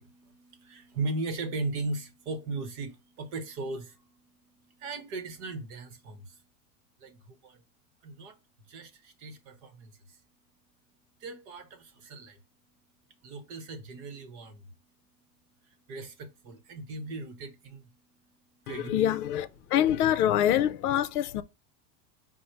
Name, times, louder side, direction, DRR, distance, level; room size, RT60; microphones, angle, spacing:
voice 1, 0.0-6.4 7.0-7.6 8.0-8.4 8.7-10.2 11.2-12.4 13.2-14.7 15.6-18.9 19.6-19.7, right 3 dB, 45° right, 0.9 m, -38 dB
voice 2, 18.7-21.4, left 11 dB, 65° left, 0.6 m, -25 dB
5.3 x 2.1 x 4.4 m
supercardioid pair, 170°, 49 cm